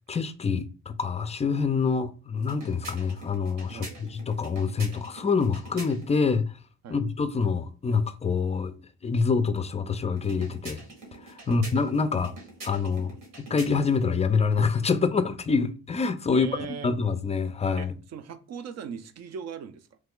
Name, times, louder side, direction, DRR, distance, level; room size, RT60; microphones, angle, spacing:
voice 1, 0.1-6.5 6.9-8.8 9.0-10.8 11.2-12.3 12.6-16.5 16.8-17.9, left 5 dB, 20° left, 0.3 m, -26 dB
sound 1, 2.4-6.3 10.2-14.1, right 2 dB, 85° right, 1.5 m, -45 dB
voice 2, 16.3-16.9 17.8-20.0, right 7 dB, 60° right, 0.5 m, -39 dB
3.1 x 2.3 x 3.6 m
cardioid pair, 90°, 30 cm